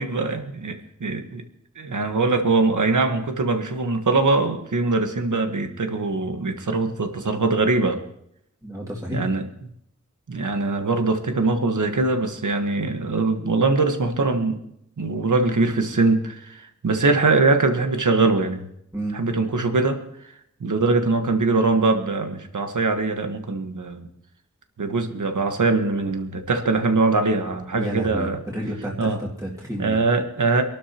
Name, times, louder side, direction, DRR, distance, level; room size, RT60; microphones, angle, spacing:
voice 1, 0.0-1.4 1.8-8.0 9.1-9.5 10.3-14.6 15.0-18.6 19.1-20.0 20.6-24.1 24.8-28.4 29.0-29.2 29.8-30.6, right 3 dB, 90° right, 6 dB, 1.4 m, -22 dB
voice 2, 8.6-9.3 18.9-19.2 27.7-30.0, equal, 10° right, -4 dB, 2.2 m, -30 dB
25.5 x 12.0 x 2.9 m, 0.74 s
wide cardioid pair, 80°, 30 cm